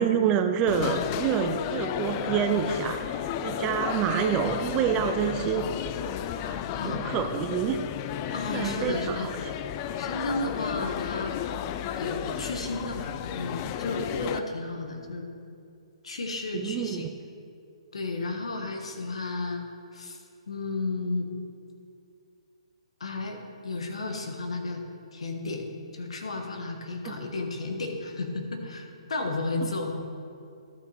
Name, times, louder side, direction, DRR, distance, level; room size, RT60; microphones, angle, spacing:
voice 1, 0.0-5.7 6.4-7.8 8.2-9.3 16.5-17.1 27.0-27.2, right 8 dB, 25° right, 8 dB, 0.5 m, -28 dB
sound 1, 0.7-14.4, left 10 dB, 30° left, 0.3 m, -33 dB
voice 2, 8.3-9.3 10.0-11.3 12.0-15.3 16.0-17.1 17.9-19.6 19.9-20.2 20.5-21.3 23.0-23.4 23.6-24.8 25.1-25.7 25.9-30.0, left 2 dB, 75° left, 4 dB, 1.3 m, -33 dB
12.5 x 5.8 x 4.2 m, 2.4 s
hypercardioid pair, 135°, 3 cm